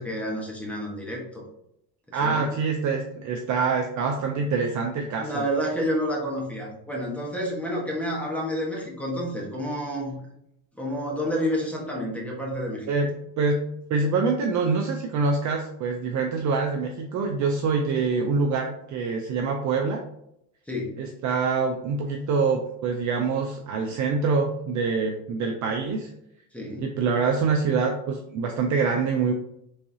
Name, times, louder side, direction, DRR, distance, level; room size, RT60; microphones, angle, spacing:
voice 1, 0.0-1.4 2.1-2.4 5.2-10.2 10.8-13.1 20.7-21.0 26.5-26.9, equal, 5° left, -3 dB, 1.1 m, -29 dB
voice 2, 2.1-5.4 12.9-13.1 13.4-13.6 13.9-20.0 21.0-26.1 26.8-29.3, right 4 dB, 40° right, 2 dB, 0.5 m, -25 dB
3.6 x 3.2 x 2.7 m, 0.78 s
supercardioid pair, 105°, 49 cm